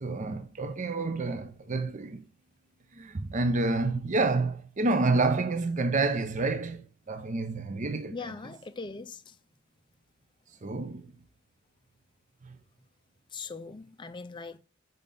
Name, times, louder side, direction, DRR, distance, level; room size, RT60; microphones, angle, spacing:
voice 1, 0.0-2.2 2.9-8.3 10.6-11.1 12.4-12.5, right 3 dB, 35° right, 0.6 m, -29 dB
voice 2, 8.1-9.4 13.3-14.6, left 4 dB, 20° left, 0.4 m, -40 dB
5.3 x 5.2 x 3.8 m
head